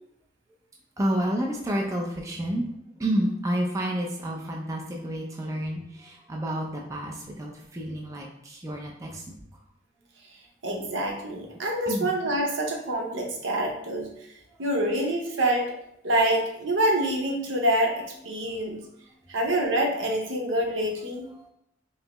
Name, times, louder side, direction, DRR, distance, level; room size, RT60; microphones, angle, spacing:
voice 1, 1.0-2.7 2.9-9.4 11.9-12.1 21.4-21.5, right 1 dB, 15° right, -1 dB, 0.4 m, -30 dB
voice 2, 10.6-14.1 14.6-15.7 16.0-18.8 19.3-21.3, right 1 dB, 85° right, 1 dB, 0.8 m, -26 dB
5.4 x 2.0 x 2.9 m, 0.75 s
head